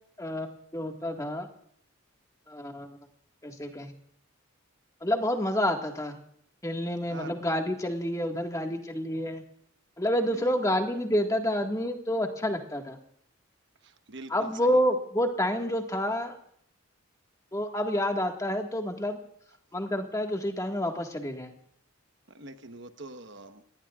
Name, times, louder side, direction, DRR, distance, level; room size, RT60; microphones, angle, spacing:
voice 1, 0.7-1.5 2.5-3.0 3.4-3.9 5.0-6.2 6.6-9.4 10.0-13.0 14.3-16.4 17.5-19.2 19.7-21.5, equal, 15° left, 3 dB, 1.7 m, -28 dB
voice 2, 13.8-14.5 22.3-23.6, right 2 dB, 55° right, 8 dB, 1.2 m, -44 dB
29.0 x 19.0 x 2.4 m, 0.67 s
head